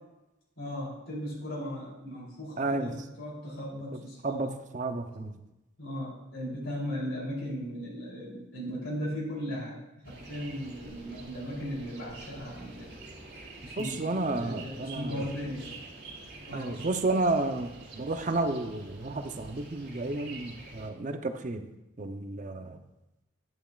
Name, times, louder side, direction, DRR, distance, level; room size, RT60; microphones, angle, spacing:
voice 1, 0.6-4.5 5.8-9.8 10.0-12.9 13.6-15.7 16.4-16.8, equal, 85° left, -6 dB, 3.2 m, -37 dB
voice 2, 2.6-3.0 4.2-5.3 13.8-15.2 16.5-21.7 22.0-22.8, right 2 dB, 40° right, 7 dB, 0.6 m, -31 dB
sound 1, 10.0-20.9, right 2 dB, 55° right, 1.9 m, -47 dB
10.5 x 10.0 x 2.4 m, 0.95 s
head